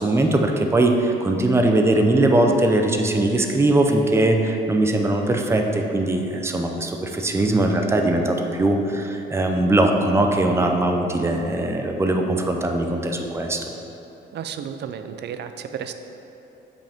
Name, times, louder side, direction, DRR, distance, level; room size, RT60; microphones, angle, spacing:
voice 1, 0.0-13.7, right 2 dB, 15° right, 3 dB, 0.6 m, -20 dB
voice 2, 14.3-15.9, right 8 dB, 60° right, 9 dB, 0.4 m, -32 dB
7.4 x 5.2 x 3.5 m, 3.0 s
cardioid pair, 90°, 20 cm